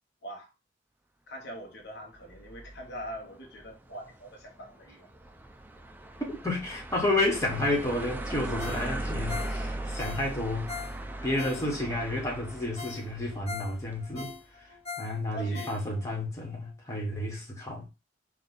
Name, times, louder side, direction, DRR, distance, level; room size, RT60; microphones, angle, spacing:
voice 1, 1.3-5.1 15.3-15.8, equal, 60° left, 0.9 m, -42 dB
sound 1, 2.2-14.3, right 1 dB, 10° right, 0.4 m, -39 dB
voice 2, 6.3-10.7 11.2-14.3 15.0-17.9, left 1 dB, 15° left, 1.3 m, -31 dB
Ringtone, 8.6-12.0 12.4-12.5 12.8-16.2 16.6-16.7, left 6 dB, 35° left, 0.8 m, -42 dB
4.5 x 2.4 x 3.8 m
head